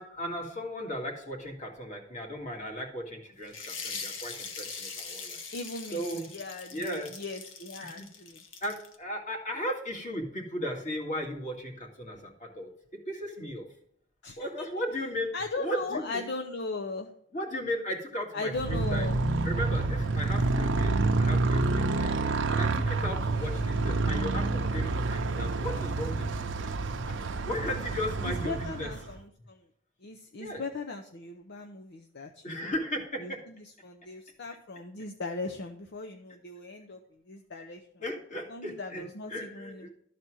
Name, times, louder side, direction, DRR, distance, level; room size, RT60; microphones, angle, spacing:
voice 1, 0.0-5.4 5.9-6.2 6.7-7.1 7.8-8.1 8.6-12.7 13.1-13.7 14.4-16.3 17.3-19.1 19.4-22.1 22.5-26.2 27.5-28.9 30.4-30.6 32.4-33.4 38.0-39.0 39.3-39.9, equal, 40° left, 1 dB, 2.1 m, -36 dB
sound 1, 3.5-9.0, left 5 dB, 85° left, 1.5 m, -41 dB
voice 2, 5.5-8.4 14.2-14.7 15.3-17.1 18.3-19.2 23.3-23.7 28.2-29.6 30.0-32.7 33.2-37.0 37.3-37.8 38.5-39.9, left 3 dB, 60° left, 4 dB, 0.7 m, -38 dB
Motorcycle, 18.5-29.2, right 3 dB, 70° right, 0.7 m, -28 dB
12.5 x 4.2 x 6.2 m, 0.69 s
head